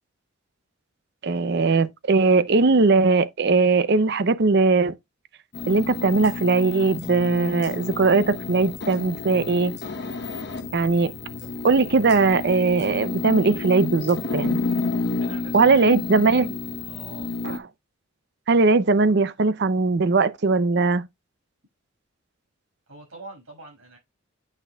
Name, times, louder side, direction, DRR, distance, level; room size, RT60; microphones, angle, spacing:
voice 1, 1.2-4.9 5.7-9.7 10.7-11.1 11.6-14.6 15.5-16.5 17.4-17.6 18.5-21.0, right 3 dB, 55° right, 0.6 m, -20 dB
sound 1, 5.5-17.6, left 3 dB, 55° left, 1.0 m, -31 dB
voice 2, 15.2-16.0 16.8-17.4 22.9-24.0, right 3 dB, 85° right, 5.7 m, -44 dB
8.7 x 6.2 x 2.3 m
head